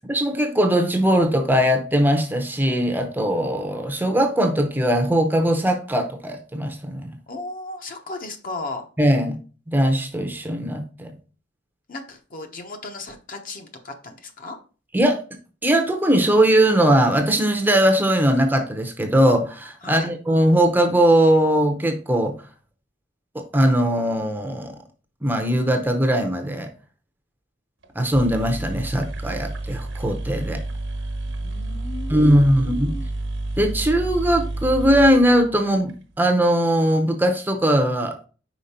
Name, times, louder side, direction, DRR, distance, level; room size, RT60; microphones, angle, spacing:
voice 1, 0.1-7.1 9.0-9.4 9.7-11.1 14.9-15.2 15.6-22.3 23.3-24.7 25.2-26.7 28.0-30.6 32.1-32.9 33.6-38.2, right 1 dB, 10° right, 4 dB, 0.6 m, -20 dB
voice 2, 7.3-8.9 11.9-14.6 19.8-20.1 31.3-33.1, left 2 dB, 45° left, 5 dB, 0.9 m, -35 dB
sound 1, 27.8-27.9 28.1-35.9, right 2 dB, 75° right, 1.1 m, -30 dB
5.2 x 4.6 x 4.2 m, 0.37 s
head